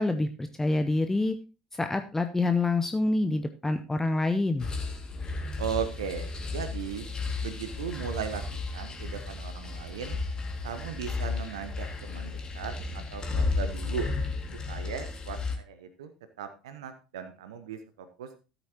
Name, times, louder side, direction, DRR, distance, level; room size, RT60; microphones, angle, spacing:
voice 1, 0.0-1.4 1.7-4.7, left 2 dB, 10° left, 8 dB, 0.7 m, -27 dB
sound 1, 4.6-15.6, left 3 dB, 25° left, 2.1 m, -33 dB
voice 2, 5.6-7.1 7.4-8.4 8.7-10.2 10.6-14.1 14.7-16.1 16.4-17.8 18.2-18.3, right 7 dB, 70° right, 10 dB, 0.9 m, -37 dB
14.0 x 8.2 x 2.9 m, 0.32 s
figure-of-eight pair, 65°, 3 cm